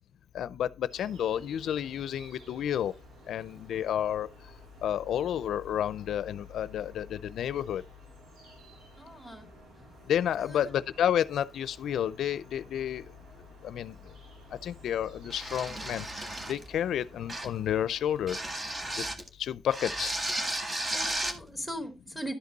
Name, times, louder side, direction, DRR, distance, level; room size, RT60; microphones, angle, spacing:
voice 1, 0.3-2.9 3.3-4.3 4.8-7.8 10.1-13.0 13.6-13.9 14.6-16.1 16.5-18.4 19.4-20.2, left 10 dB, 80° left, 0.5 m, -30 dB
sound 1, 0.9-19.1, right 2 dB, 75° right, 4.3 m, -54 dB
voice 2, 9.0-9.5 10.4-10.7 20.9-22.3, equal, 5° right, 2.4 m, -39 dB
Shaving cream spray, 15.3-16.7 17.3-17.6 18.3-19.3 19.7-21.4, right 1 dB, 25° right, 1.5 m, -34 dB
11.5 x 5.3 x 3.9 m
cardioid pair, 115°, 0 cm